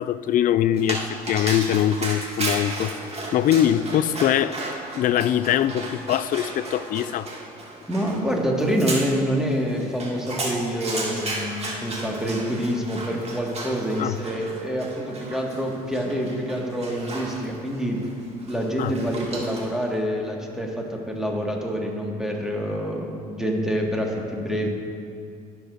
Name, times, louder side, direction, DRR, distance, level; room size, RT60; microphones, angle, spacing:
voice 1, 0.0-2.9 3.3-4.5 5.0-7.3 14.0-14.2 18.8-18.9, left 10 dB, 45° left, 15 dB, 0.4 m, -22 dB
Dog, 0.8-19.8, right 2 dB, 30° right, 2.1 m, -34 dB
voice 2, 7.9-18.0 18.5-24.7, equal, ahead, -1 dB, 1.7 m, -26 dB
16.0 x 6.9 x 2.6 m, 2.4 s
hypercardioid pair, 60°, 20 cm